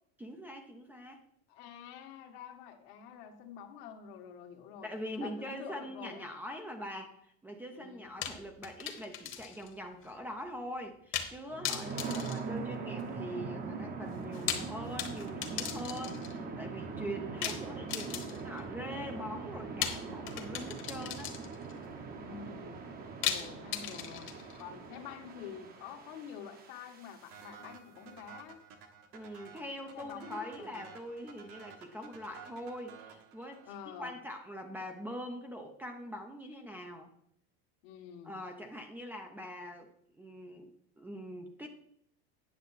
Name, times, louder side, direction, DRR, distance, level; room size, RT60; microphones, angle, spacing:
voice 1, 0.2-1.2 4.8-21.3 29.1-33.7 34.0-37.1 38.2-39.9 40.2-41.7, equal, 5° right, 4 dB, 0.5 m, -43 dB
voice 2, 1.5-4.9 5.2-6.3 7.7-8.1 11.7-12.1 17.0-17.4 22.2-22.8 23.2-24.3 24.6-28.6 29.9-30.8 33.7-34.1 37.8-38.4, left 7 dB, 65° left, 5 dB, 1.4 m, -47 dB
sound 1, 8.2-9.7 10.0-10.1 11.1-11.4 11.6-13.2 14.2-16.4 17.4-18.6 19.8-21.7 23.2-24.6, left 10 dB, 35° left, 1.2 m, -37 dB
sound 2, 11.5-27.4, right 4 dB, 25° right, 0.9 m, -42 dB
sound 3, 27.3-34.0, right 6 dB, 65° right, 1.4 m, -53 dB
9.3 x 6.7 x 4.0 m, 0.69 s
cardioid pair, 160°, 33 cm